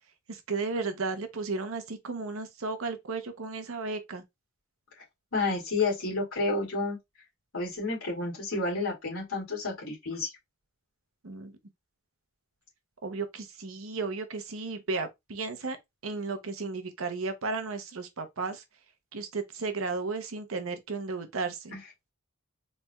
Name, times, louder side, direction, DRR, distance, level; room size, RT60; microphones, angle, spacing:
voice 1, 0.3-4.2 11.2-11.6 13.0-15.8 16.0-18.6 19.1-21.7, right 4 dB, 70° right, 0.8 m, -34 dB
voice 2, 5.3-7.0 7.5-10.3 21.7-21.8, left 3 dB, 75° left, 2.2 m, -30 dB
4.1 x 3.2 x 2.3 m
head